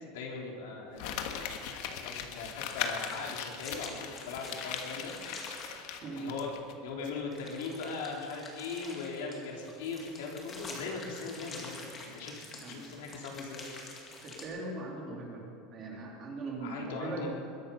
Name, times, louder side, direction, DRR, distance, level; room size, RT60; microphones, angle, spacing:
voice 1, 0.1-1.6 2.0-5.1 6.1-13.6 16.6-17.3, left 4 dB, 85° left, -1 dB, 3.8 m, -40 dB
Crumpling crinkling, 1.0-6.7 7.0-7.1, left 8 dB, 50° left, 1.3 m, -39 dB
sound 1, 2.4-5.7 7.3-14.4, left 3 dB, 20° left, 2.1 m, -47 dB
voice 2, 14.2-15.4 15.7-17.3, right 3 dB, 25° right, -1 dB, 2.7 m, -40 dB
21.5 x 11.0 x 5.5 m, 2.6 s
supercardioid pair, 180°, 0 cm